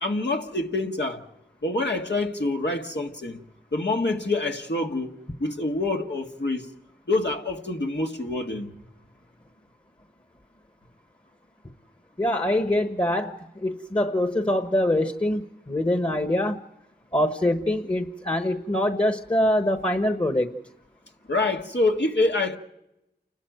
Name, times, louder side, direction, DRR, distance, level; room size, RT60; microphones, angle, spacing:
voice 1, 0.0-1.2 1.6-3.4 3.7-5.1 5.4-6.7 7.1-8.7 21.3-22.6, left 2 dB, 80° left, 1.9 m, -26 dB
voice 2, 12.2-16.6 17.1-20.6, left 1 dB, 25° left, 1.2 m, -24 dB
29.0 x 12.5 x 9.2 m
wide cardioid pair, 45°, 18 cm